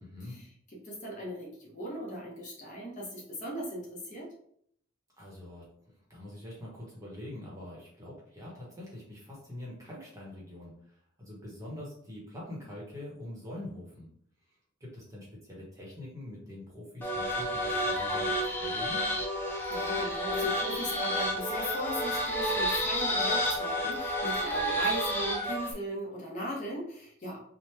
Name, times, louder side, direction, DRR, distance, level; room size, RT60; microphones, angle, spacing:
voice 1, 0.8-4.3 19.7-27.4, right 1 dB, 35° left, -3 dB, 0.7 m, -38 dB
voice 2, 5.2-14.1 14.8-19.1, left 1 dB, 15° right, -5 dB, 0.8 m, -44 dB
sound 1, 17.0-25.7, equal, 10° left, 0.4 m, -30 dB
2.9 x 2.1 x 3.2 m, 0.66 s
head